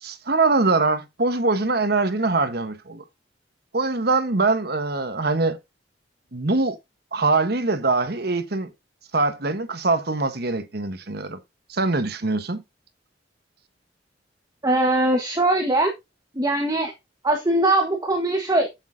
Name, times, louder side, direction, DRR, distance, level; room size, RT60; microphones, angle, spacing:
voice 1, 0.0-3.0 3.7-5.6 6.3-6.8 7.1-8.7 9.1-11.4 11.7-12.6, right 3 dB, 55° right, 1.2 m, -23 dB
voice 2, 14.6-15.9 16.4-16.9 17.2-18.7, right 1 dB, 20° right, 1.4 m, -21 dB
8.6 x 8.1 x 2.7 m
head